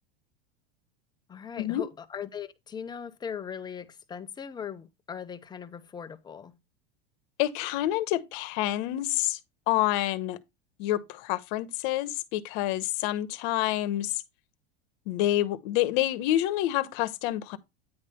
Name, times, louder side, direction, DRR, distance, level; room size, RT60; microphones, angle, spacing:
voice 1, 1.3-6.5, left 7 dB, 15° left, 0.6 m, -39 dB
voice 2, 7.4-9.4 9.7-10.4 10.8-14.2 15.1-17.6, left 14 dB, 60° left, 1.0 m, -28 dB
9.6 x 3.4 x 5.5 m
supercardioid pair, 140°, 29 cm